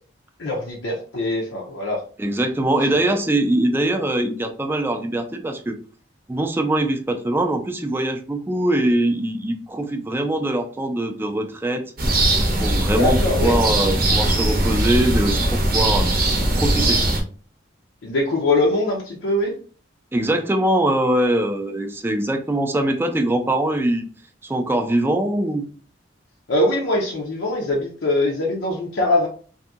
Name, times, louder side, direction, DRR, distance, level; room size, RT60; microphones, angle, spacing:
voice 1, 0.4-2.0 3.0-3.1 12.8-13.6 18.0-19.5 26.5-29.3, left 2 dB, 90° left, -2 dB, 0.6 m, -22 dB
voice 2, 2.2-5.8 6.3-11.9 12.6-16.1 16.6-17.0 20.1-24.0 24.4-25.6, right 1 dB, 10° right, 6 dB, 0.3 m, -22 dB
sound 1, 12.0-17.2, right 1 dB, 50° right, 0.7 m, -20 dB
2.7 x 2.6 x 2.3 m, 0.40 s
head